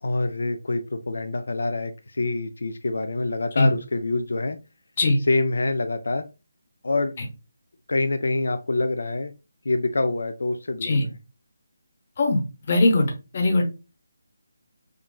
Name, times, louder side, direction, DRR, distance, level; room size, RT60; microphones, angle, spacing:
voice 1, 0.0-4.6 5.3-6.3 6.8-7.1 7.9-9.3 9.6-11.2, left 2 dB, 75° left, 8 dB, 0.3 m, -26 dB
voice 2, 12.7-13.6, left 2 dB, 35° left, 2 dB, 0.8 m, -20 dB
3.6 x 2.3 x 2.3 m, 0.30 s
hypercardioid pair, 170°, 0 cm